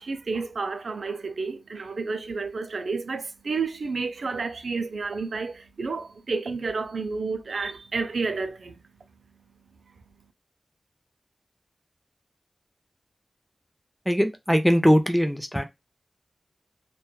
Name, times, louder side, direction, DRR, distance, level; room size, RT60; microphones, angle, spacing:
voice 1, 0.0-8.8, right 4 dB, 85° right, 0.4 m, -30 dB
voice 2, 14.1-15.6, equal, ahead, 0.4 m, -21 dB
2.9 x 2.2 x 2.2 m
wide cardioid pair, 100°, 0 cm